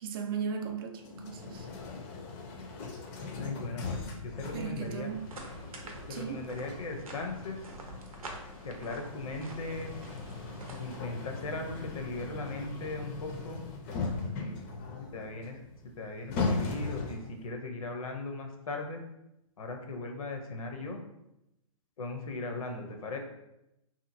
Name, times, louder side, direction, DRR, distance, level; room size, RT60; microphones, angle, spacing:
voice 1, 0.0-1.7 4.5-5.4 5.8-6.5, right 6 dB, 40° right, 0.4 m, -37 dB
sound 1, 1.0-17.4, left 3 dB, 30° left, 0.4 m, -39 dB
voice 2, 3.3-5.1 6.1-7.7 8.6-9.9 10.8-13.6 14.3-15.6 15.8-19.0 19.6-21.0 22.0-23.2, left 2 dB, 80° left, 0.6 m, -38 dB
sound 2, 4.7-11.0, right 2 dB, 90° right, 0.6 m, -47 dB
2.9 x 2.5 x 2.5 m
hypercardioid pair, 135°, 18 cm